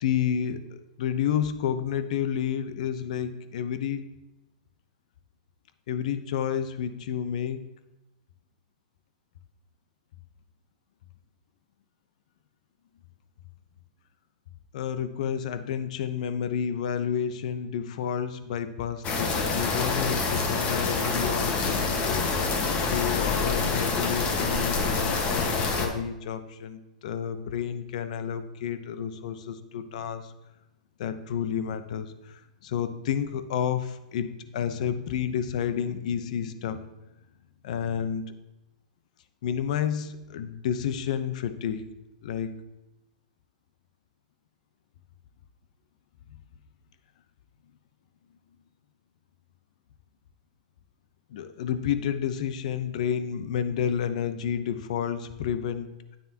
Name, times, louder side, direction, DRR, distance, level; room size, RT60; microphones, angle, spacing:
voice 1, 0.0-4.1 5.9-7.6 14.7-22.3 22.9-30.3 31.0-36.9 37.6-38.3 39.4-41.9 42.2-42.6 51.3-56.2, left 8 dB, 65° left, 11 dB, 0.8 m, -30 dB
sound 1, 19.0-25.9, left 4 dB, 30° left, 1.4 m, -26 dB
9.9 x 9.2 x 2.9 m, 0.96 s
hypercardioid pair, 130°, 4 cm